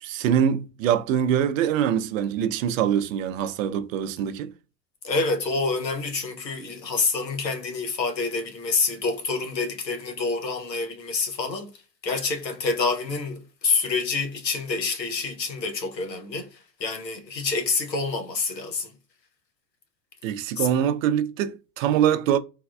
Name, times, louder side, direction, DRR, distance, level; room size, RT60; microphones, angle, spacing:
voice 1, 0.0-4.5 20.2-22.4, right 9 dB, 55° right, 0.6 m, -24 dB
voice 2, 5.0-11.7 12.0-18.9 20.6-20.7, left 4 dB, 90° left, 0.8 m, -27 dB
3.4 x 2.3 x 2.3 m
figure-of-eight pair, 85°, 49 cm